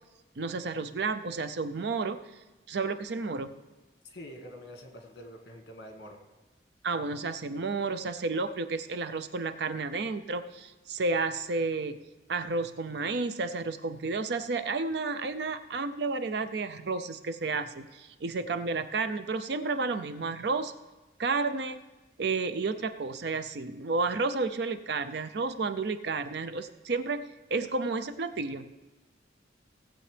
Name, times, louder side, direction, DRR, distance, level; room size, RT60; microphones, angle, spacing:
voice 1, 0.4-2.2 2.7-3.5 6.8-12.0 12.3-20.7 21.2-21.8 22.2-28.7, right 3 dB, 60° right, 11 dB, 0.5 m, -31 dB
voice 2, 4.0-6.2, equal, 60° left, 3 dB, 1.7 m, -46 dB
17.5 x 7.7 x 3.3 m, 1.1 s
head